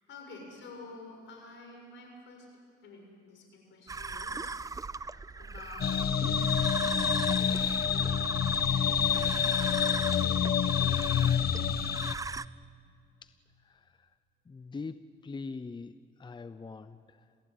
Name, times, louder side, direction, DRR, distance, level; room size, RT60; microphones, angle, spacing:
voice 1, 0.0-2.5 2.8-4.7 5.4-6.5 7.3-8.4 8.7-11.4, left 3 dB, 70° left, 2 dB, 6.9 m, -50 dB
sound 1, 3.9-12.5, right 4 dB, 15° right, 0.5 m, -39 dB
sound 2, 5.8-12.1, left 8 dB, 50° left, 0.9 m, -27 dB
voice 2, 14.5-15.9 16.2-17.2, left 4 dB, 25° left, 13 dB, 0.7 m, -42 dB
30.0 x 16.0 x 9.5 m, 2.4 s
cardioid pair, 90°, 20 cm